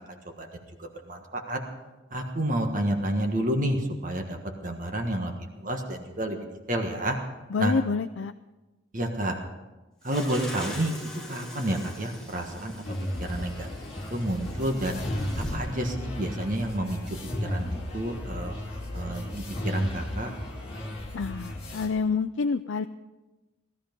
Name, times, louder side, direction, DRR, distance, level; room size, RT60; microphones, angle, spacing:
voice 1, 0.8-1.6 2.1-4.4 4.6-7.2 7.6-7.7 8.9-9.4 10.0-10.9 11.3-12.8 13.2-13.7 14.1-15.0 15.5-18.5 18.9-20.3, right 1 dB, 40° right, 3 dB, 1.5 m, -30 dB
voice 2, 7.5-8.3 21.1-22.9, left 5 dB, 70° left, 8 dB, 0.4 m, -28 dB
sound 1, 10.1-15.6, left 1 dB, 5° left, 2.9 m, -40 dB
sound 2, 12.8-21.9, left 1 dB, 30° left, 2.6 m, -34 dB
18.0 x 13.0 x 5.3 m, 1.1 s
head